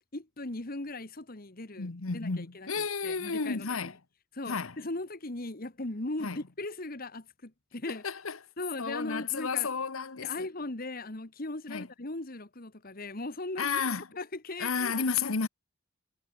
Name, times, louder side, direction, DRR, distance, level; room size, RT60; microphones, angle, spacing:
voice 1, 0.1-3.9 4.3-8.1 8.6-9.7 10.2-13.8 14.1-14.9, left 2 dB, 45° left, 1.6 m, -38 dB
voice 2, 1.8-3.9 4.5-4.7 6.2-6.4 7.9-8.4 8.8-10.3 11.7-11.8 13.6-14.0 14.6-15.5, left 5 dB, 80° left, 1.2 m, -32 dB
head